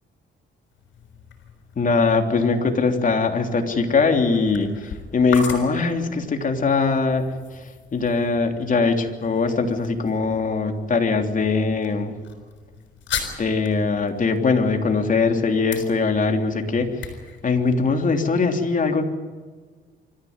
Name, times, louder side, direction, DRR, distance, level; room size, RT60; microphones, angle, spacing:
sound 1, 0.7-18.5, left 6 dB, 70° left, 6.1 m, -39 dB
voice 1, 1.8-12.1 13.4-17.2 17.4-19.0, left 4 dB, 40° left, 5 dB, 3.2 m, -21 dB
25.0 x 14.5 x 9.6 m, 1.4 s
cardioid pair, 90°, 20 cm